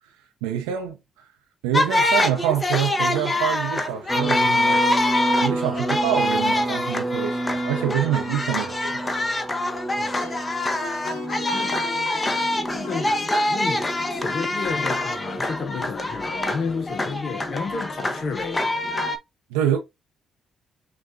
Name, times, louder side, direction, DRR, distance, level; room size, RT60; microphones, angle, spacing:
voice 1, 0.4-1.0 1.6-4.8 5.4-9.1 19.5-19.8, right 10 dB, 85° right, 0.5 m, -26 dB
sound 1, 1.7-19.2, left 1 dB, 25° left, 0.8 m, -25 dB
sound 2, 4.1-17.0, right 1 dB, 5° right, 0.8 m, -31 dB
Plucked string instrument, 9.6-14.9, left 4 dB, 75° left, 1.0 m, -42 dB
voice 2, 10.0-10.3 11.5-11.8 12.1-18.6, left 5 dB, 55° left, 0.6 m, -32 dB
6.1 x 2.2 x 2.6 m
hypercardioid pair, 50°, 0 cm